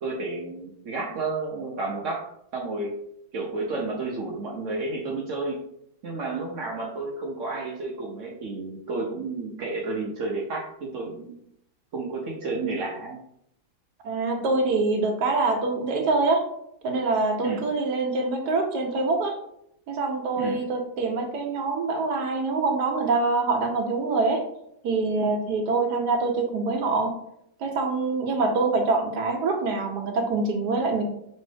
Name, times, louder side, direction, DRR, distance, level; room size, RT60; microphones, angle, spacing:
voice 1, 0.0-2.2 2.5-3.0 3.3-5.6 6.0-11.4 11.9-13.2 17.4-17.6 20.4-20.6, right 3 dB, 80° right, -2 dB, 0.6 m, -31 dB
voice 2, 14.0-16.5 16.8-19.4 19.9-24.4 24.8-27.1 27.6-31.0, right 3 dB, 60° right, 3 dB, 1.3 m, -25 dB
5.3 x 3.0 x 3.3 m, 0.74 s
omnidirectional pair, 2.2 m